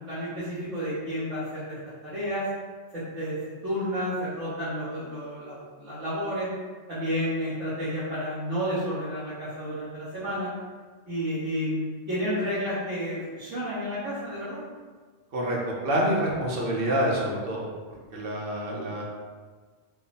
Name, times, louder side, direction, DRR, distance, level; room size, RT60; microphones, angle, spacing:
voice 1, 0.0-2.4 2.9-3.4 3.6-6.5 6.9-10.5 11.1-14.6, equal, 85° right, -12 dB, 1.5 m, -31 dB
voice 2, 15.3-17.7 18.1-19.0, equal, 55° right, -3 dB, 0.9 m, -27 dB
3.8 x 2.0 x 4.0 m, 1.4 s
omnidirectional pair, 1.2 m